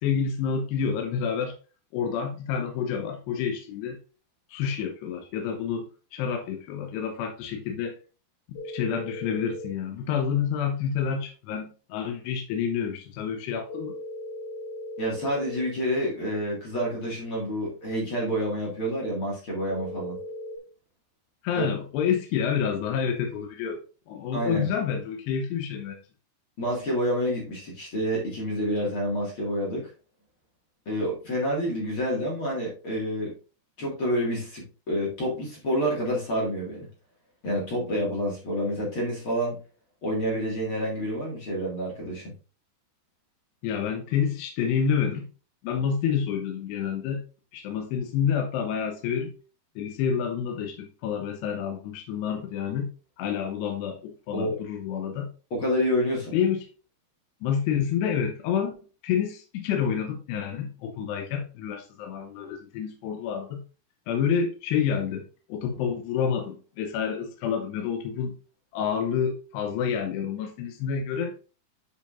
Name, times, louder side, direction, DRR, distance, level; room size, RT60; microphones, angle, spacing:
voice 1, 0.0-1.6 1.9-4.0 4.5-8.0 8.5-14.0 21.4-26.0 43.6-45.3 45.6-47.2 47.5-49.4 49.8-52.9 53.2-55.3 56.3-56.7 57.4-58.7 59.0-63.6 64.1-68.4 68.7-71.4, left 7 dB, 80° left, 3.1 m, -28 dB
sound 1, 8.6-9.7 13.7-15.7 19.7-20.6, left 2 dB, 60° left, 2.2 m, -37 dB
voice 2, 15.0-20.2 21.6-21.7 24.3-24.7 26.6-29.9 30.9-33.3 33.8-36.9 37.4-39.6 40.0-42.3 54.3-54.6 55.5-56.3, equal, 40° left, 2.2 m, -28 dB
9.7 x 5.1 x 2.5 m
omnidirectional pair, 4.8 m